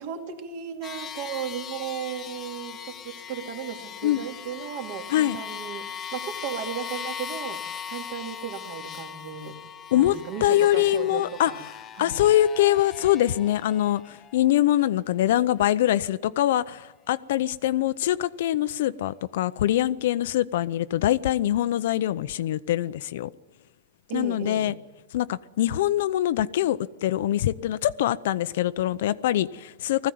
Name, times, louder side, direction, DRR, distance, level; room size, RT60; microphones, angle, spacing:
voice 1, 0.0-7.6 7.9-9.6 9.9-11.6 11.9-12.2 24.1-24.7, right 8 dB, 45° right, 2.5 m, -35 dB
sound 1, 0.8-14.5, left 8 dB, 15° left, 0.8 m, -39 dB
voice 2, 9.9-11.5 12.0-23.3 24.1-24.7 25.1-30.1, left 13 dB, 55° left, 0.6 m, -23 dB
20.0 x 15.5 x 9.4 m
supercardioid pair, 170°, 0 cm